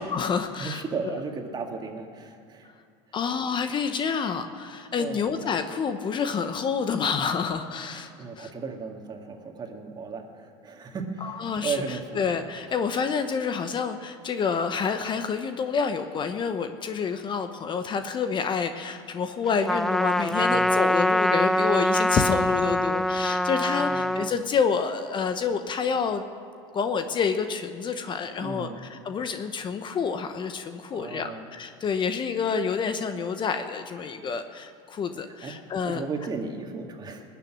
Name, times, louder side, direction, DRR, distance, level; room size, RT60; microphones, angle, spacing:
voice 1, 0.0-1.2 3.1-8.1 8.4-8.5 11.4-11.8 12.1-26.2 26.7-36.0, left 6 dB, 35° left, 8 dB, 0.9 m, -28 dB
voice 2, 0.6-2.7 5.0-5.3 8.2-12.2 12.7-12.8 20.3-20.7 23.7-24.2 28.4-28.8 30.9-31.5 35.2-35.5 35.8-37.2, right 4 dB, 30° right, 3 dB, 2.1 m, -35 dB
Trumpet, 19.7-24.3, left 1 dB, ahead, 0.4 m, -24 dB
19.5 x 7.0 x 10.0 m, 2.4 s
supercardioid pair, 100°, 14 cm